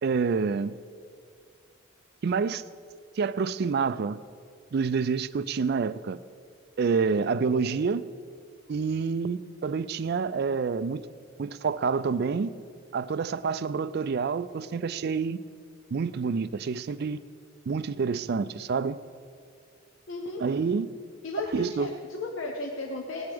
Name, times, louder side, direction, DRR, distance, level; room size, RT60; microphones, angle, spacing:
voice 1, 0.0-0.8 2.2-2.6 3.2-4.2 4.7-6.2 6.8-8.0 8.7-11.1 11.4-12.5 12.9-15.4 15.9-17.2 17.7-19.0 20.4-20.9 21.5-21.9, right 5 dB, 50° right, 15 dB, 0.4 m, -28 dB
voice 2, 20.1-20.4 21.2-23.3, left 2 dB, 65° left, 2 dB, 0.9 m, -35 dB
17.5 x 11.5 x 3.5 m, 2.2 s
head